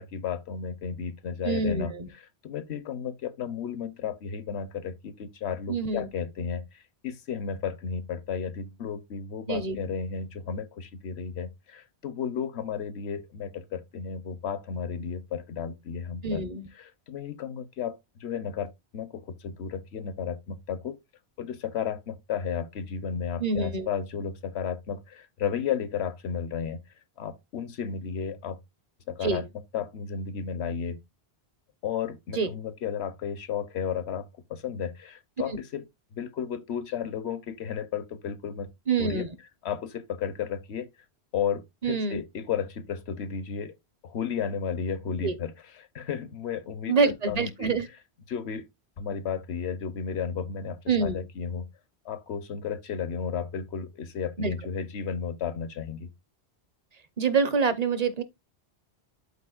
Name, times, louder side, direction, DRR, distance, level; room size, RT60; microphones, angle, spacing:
voice 1, 0.0-1.9 2.4-16.4 16.8-21.0 21.4-26.8 27.2-28.6 29.1-29.4 29.7-31.0 31.8-35.8 36.1-38.7 39.0-39.3 39.6-40.9 41.3-43.7 44.0-47.0 47.3-47.7 48.3-48.6 49.0-51.7 52.0-56.1, left 7 dB, 75° left, 1.1 m, -33 dB
voice 2, 1.4-2.1 5.7-6.1 9.5-9.8 16.2-16.7 23.4-23.9 29.2-29.5 32.3-32.5 35.5-35.6 38.9-39.3 41.8-42.2 45.2-45.4 46.9-47.9 50.9-51.2 54.4-54.5 57.2-58.2, right 5 dB, 40° right, 0.8 m, -26 dB
12.0 x 4.2 x 2.4 m
omnidirectional pair, 1.1 m